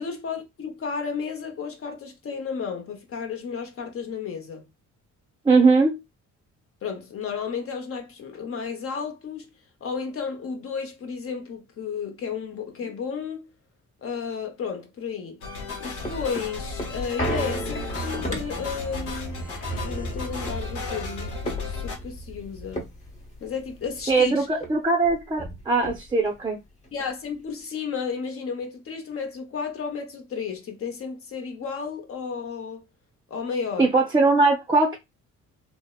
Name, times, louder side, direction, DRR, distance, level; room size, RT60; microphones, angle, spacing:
voice 1, 0.0-4.7 6.8-9.5 9.8-13.5 14.0-15.4 15.8-19.5 19.8-22.9 23.4-24.5 26.9-32.9 33.3-34.0, left 6 dB, 50° left, 0.8 m, -33 dB
voice 2, 5.5-6.0 24.1-26.6 33.8-35.0, right 3 dB, 15° right, 0.5 m, -20 dB
sound 1, 15.4-22.0, left 4 dB, 80° left, 1.0 m, -35 dB
sound 2, 15.6-24.3 24.6-24.7 25.0-26.4 26.8-26.9, right 1 dB, 20° left, 0.9 m, -34 dB
2.7 x 2.0 x 2.3 m
cardioid pair, 90°, 30 cm